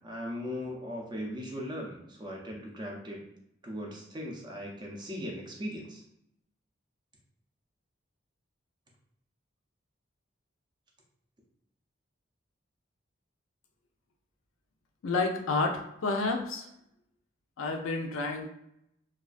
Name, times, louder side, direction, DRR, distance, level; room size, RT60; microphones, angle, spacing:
voice 1, 0.0-3.2 3.6-6.0, equal, 20° right, -1 dB, 0.4 m, -38 dB
voice 2, 15.0-16.7 17.6-18.5, left 3 dB, 85° left, 3 dB, 0.4 m, -30 dB
2.3 x 2.2 x 2.4 m, 0.78 s
head